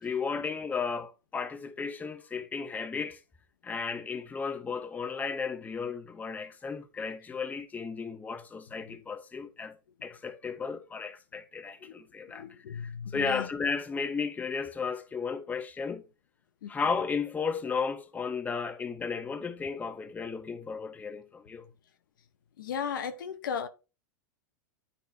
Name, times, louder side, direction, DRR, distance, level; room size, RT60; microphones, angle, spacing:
voice 1, 0.0-3.2 3.6-9.8 10.0-16.0 16.7-21.6, left 5 dB, 15° left, 0.7 m, -34 dB
voice 2, 12.3-13.5 16.6-16.7 22.6-23.7, left 7 dB, 80° left, 0.8 m, -36 dB
9.1 x 4.1 x 2.7 m
hypercardioid pair, 115°, 11 cm